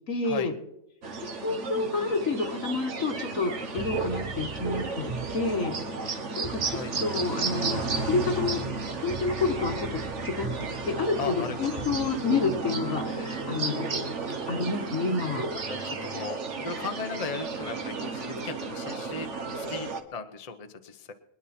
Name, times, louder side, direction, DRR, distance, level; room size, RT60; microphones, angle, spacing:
voice 1, 0.1-0.5 1.2-5.8 6.1-8.6 9.0-13.9 14.5-15.5, left 3 dB, 65° left, 5 dB, 2.0 m, -29 dB
sound 1, 1.0-20.0, right 4 dB, 55° right, 1.6 m, -33 dB
sound 2, 3.7-5.6 6.4-6.8 7.8-11.0 11.8-12.2, right 4 dB, 40° right, 0.7 m, -39 dB
voice 2, 11.2-11.9 15.7-21.1, left 4 dB, 30° left, 7 dB, 0.9 m, -37 dB
24.0 x 10.0 x 4.4 m, 0.83 s
omnidirectional pair, 1.5 m